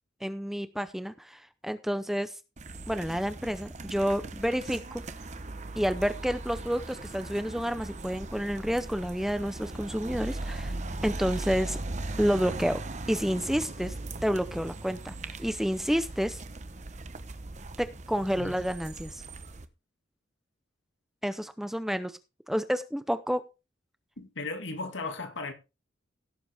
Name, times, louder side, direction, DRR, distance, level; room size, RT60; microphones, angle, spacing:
voice 1, 0.2-2.3 2.9-5.0 5.8-10.7 11.0-11.8 12.2-12.8 13.1-13.9 14.2-16.4 17.8-19.2 21.2-22.2 22.5-23.5, equal, ahead, 0.6 m, -29 dB
sound 1, 2.6-19.6, right 2 dB, 35° right, 1.0 m, -39 dB
Musical instrument, 4.4-16.1, right 1 dB, 70° right, 2.6 m, -54 dB
voice 2, 24.2-25.5, left 3 dB, 70° left, 2.2 m, -36 dB
17.0 x 7.6 x 3.5 m
head